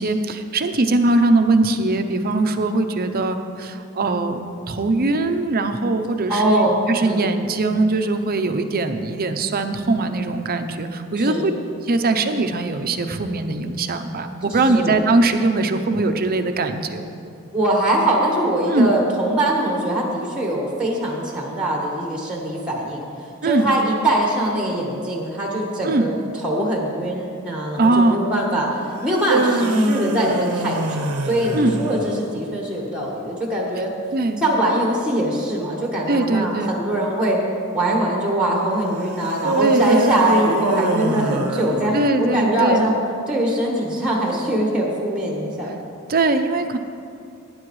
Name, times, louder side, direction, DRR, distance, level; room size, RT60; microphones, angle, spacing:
voice 1, 0.0-11.5 11.8-17.1 18.7-18.9 23.4-23.7 25.8-26.1 27.8-28.3 31.5-31.8 34.1-34.4 36.1-36.8 39.6-40.1 41.9-42.9 46.1-46.8, right 2 dB, 45° right, 8 dB, 0.7 m, -21 dB
voice 2, 6.3-7.3 11.2-11.5 14.5-15.0 17.5-26.2 26.4-28.7 29.0-33.9 34.4-37.4 37.7-42.9 43.3-45.8, right 1 dB, 5° right, -1 dB, 1.4 m, -22 dB
sound 1, 29.0-32.3 39.4-42.4, right 2 dB, 85° right, 0.8 m, -23 dB
18.0 x 9.6 x 3.2 m, 2.4 s
head